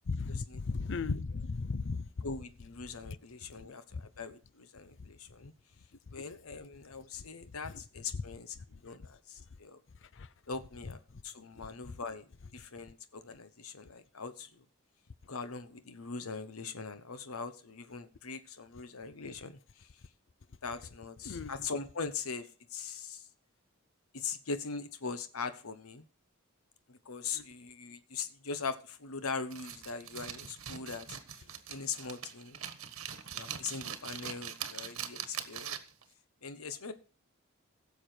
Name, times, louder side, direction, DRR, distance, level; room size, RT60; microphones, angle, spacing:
voice 1, 0.1-2.3 3.1-3.2 3.6-4.0 6.2-6.3 7.6-7.7 8.1-8.2 10.2-10.3 11.9-12.0 21.2-21.5 27.3-27.4, left 4 dB, 60° left, 0.6 m, -36 dB
voice 2, 2.2-5.5 6.1-8.6 8.8-9.8 10.5-11.0 11.2-12.2 12.5-14.5 15.3-19.5 20.6-23.2 24.1-26.0 26.9-31.1 31.7-32.6 33.3-35.8 36.4-36.9, left 5 dB, 90° left, 1.1 m, -41 dB
sound 1, 29.5-36.0, right 9 dB, 75° right, 1.4 m, -42 dB
16.0 x 7.2 x 4.5 m
head